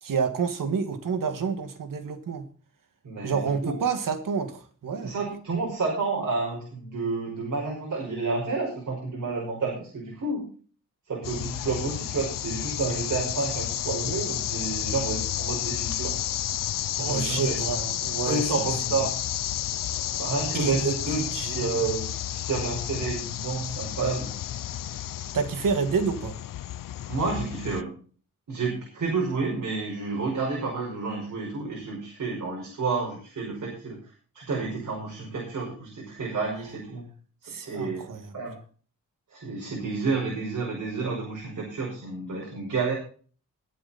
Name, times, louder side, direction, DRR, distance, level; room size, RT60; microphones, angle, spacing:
voice 1, 0.0-2.5 3.2-5.1 17.0-18.7 20.5-21.8 25.3-26.4 37.5-38.3, right 5 dB, 80° right, 7 dB, 2.2 m, -29 dB
voice 2, 3.0-3.8 5.0-10.5 11.1-16.2 17.0-17.6 18.2-19.2 20.1-24.3 27.1-28.0 28.5-34.0 34.3-37.1 37.4-38.1 38.3-38.5 39.3-42.9, right 4 dB, 65° right, -2 dB, 5.7 m, -30 dB
sound 1, 11.2-27.8, left 12 dB, 90° left, 0.6 m, -31 dB
21.0 x 7.7 x 4.3 m, 0.41 s
wide cardioid pair, 165°, 32 cm